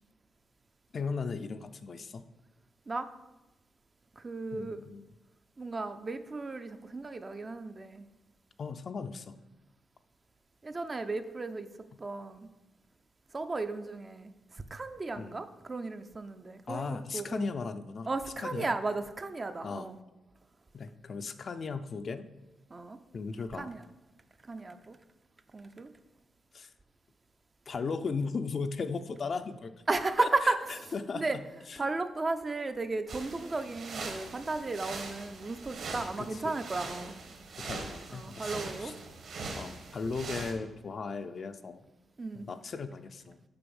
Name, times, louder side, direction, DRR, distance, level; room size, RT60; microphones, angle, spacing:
voice 1, 0.9-2.2 4.5-5.1 8.6-9.4 15.1-15.4 16.7-18.1 18.4-18.7 19.6-19.9 20.7-22.2 23.1-23.7 26.5-26.7 27.7-29.7 30.2-30.5 30.9-31.9 36.2-36.6 37.6-38.5 38.8-38.9 39.5-41.8 42.3-43.4, left 4 dB, 40° left, 9 dB, 0.4 m, -37 dB
voice 2, 4.2-4.8 5.6-8.1 10.6-11.7 12.0-12.5 13.3-17.5 18.1-20.0 22.7-23.0 23.6-23.8 24.4-25.0 25.5-25.9 29.9-30.6 31.1-31.4 31.8-37.1 38.1-38.9 42.2-42.5, right 3 dB, 25° right, 9 dB, 0.4 m, -34 dB
sound 1, 33.1-40.5, right 3 dB, 60° right, 1.4 m, -42 dB
6.9 x 5.4 x 7.0 m, 1.0 s
wide cardioid pair, 170°, 0 cm